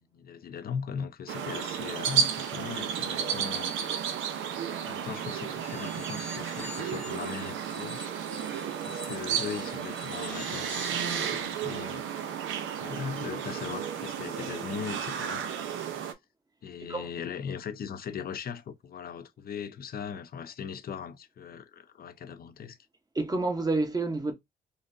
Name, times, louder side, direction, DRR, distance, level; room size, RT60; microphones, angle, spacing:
voice 1, 0.0-3.7 4.9-8.0 8.8-12.1 12.8-15.9 16.6-22.8, left 7 dB, 50° left, 0.6 m, -39 dB
sound 1, 1.3-16.1, right 8 dB, 80° right, 0.7 m, -33 dB
sound 2, 5.6-11.4, left 1 dB, 5° left, 0.9 m, -45 dB
voice 2, 16.8-17.1 23.1-24.3, right 2 dB, 20° right, 1.0 m, -29 dB
3.8 x 2.5 x 2.6 m
cardioid pair, 90°, 20 cm